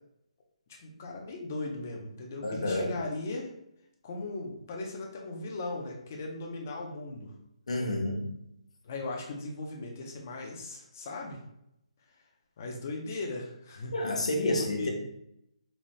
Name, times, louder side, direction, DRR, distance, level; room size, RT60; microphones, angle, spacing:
voice 1, 0.8-3.5 4.0-7.3 8.8-11.4 12.6-13.9 14.5-14.9, left 2 dB, 20° left, 0 dB, 0.5 m, -38 dB
voice 2, 2.4-2.9 7.7-8.2 13.9-14.9, left 1 dB, 60° left, 1 dB, 0.9 m, -29 dB
4.0 x 2.6 x 3.1 m, 0.79 s
hypercardioid pair, 180°, 4 cm